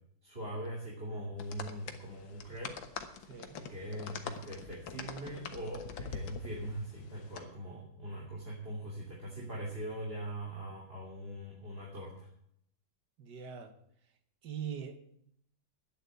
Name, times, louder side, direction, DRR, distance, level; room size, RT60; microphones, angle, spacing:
voice 1, 0.2-2.7 3.6-12.3, right 1 dB, 30° right, 3.2 m, -41 dB
sound 1, 1.4-7.4, left 6 dB, 85° left, 2.0 m, -45 dB
voice 2, 3.3-3.6 13.2-13.7 14.4-15.0, right 8 dB, 65° right, 1.9 m, -41 dB
12.0 x 9.6 x 8.1 m
omnidirectional pair, 2.1 m